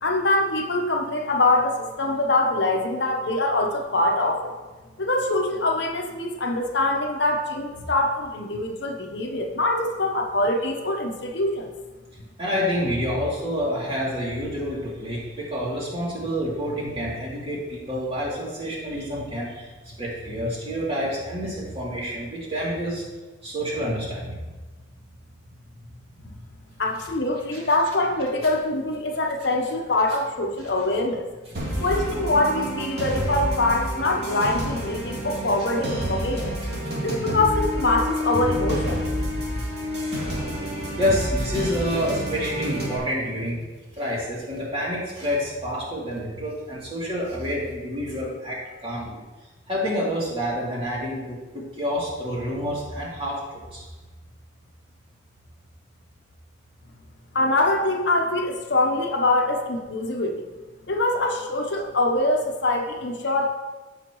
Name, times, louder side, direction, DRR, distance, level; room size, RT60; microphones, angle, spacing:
voice 1, 0.0-4.5 5.0-11.7 26.8-31.3 31.8-36.6 37.0-39.0 57.3-60.4 60.9-63.5, left 2 dB, 60° left, 2 dB, 1.0 m, -24 dB
voice 2, 12.4-19.7 20.0-23.0 23.4-24.4 27.5-27.6 31.6-32.3 41.0-43.6 44.0-49.2 49.7-53.4 53.7-53.8, equal, 30° right, -6 dB, 2.8 m, -28 dB
sound 1, 31.5-43.0, equal, 55° right, 3.0 m, -29 dB
15.0 x 5.9 x 3.1 m, 1.2 s
head